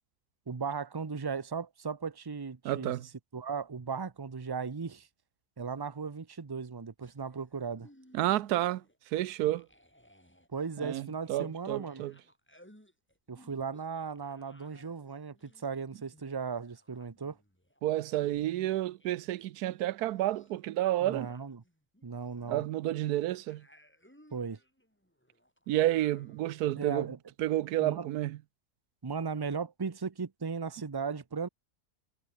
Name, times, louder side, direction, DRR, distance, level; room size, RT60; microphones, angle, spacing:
voice 1, 0.5-2.9 3.3-5.1 5.6-7.9 10.5-12.0 13.3-17.4 21.0-21.6 22.0-22.6 24.3-24.6 26.8-27.2 27.8-28.1 29.0-31.5, right 5 dB, 30° right, 0.4 m, -37 dB
voice 2, 2.6-3.1 8.1-8.8 9.1-9.7 10.8-12.1 17.8-21.3 22.5-23.6 25.7-27.1 27.4-28.4, right 14 dB, 90° right, 1.2 m, -30 dB
sound 1, 7.0-9.0 9.3-19.5 19.8-26.6, equal, 5° left, 6.2 m, -61 dB
omnidirectional pair, 1.6 m